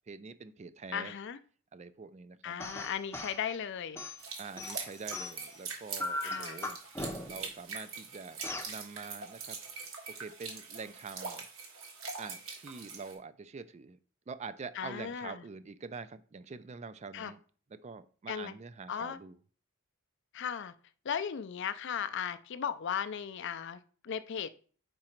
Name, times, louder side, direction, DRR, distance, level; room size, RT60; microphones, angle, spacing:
voice 1, 0.1-1.1 1.7-2.6 4.4-6.8 7.2-8.4 8.7-9.6 10.1-11.4 12.2-14.0 14.3-17.4 17.8-19.4, right 4 dB, 30° right, 13 dB, 0.4 m, -45 dB
voice 2, 0.9-1.4 2.4-4.0 6.2-6.6 14.8-15.4 17.1-17.3 18.3-18.5 18.9-19.2 20.3-20.7 21.0-24.5, left 8 dB, 55° left, 12 dB, 0.4 m, -36 dB
sound 1, 2.6-3.4 3.9-5.6 6.0-7.5 8.4-8.7, left 2 dB, 10° left, 0.6 m, -39 dB
sound 2, 4.2-13.1, right 4 dB, 70° right, 1.6 m, -43 dB
5.2 x 4.8 x 4.4 m, 0.43 s
head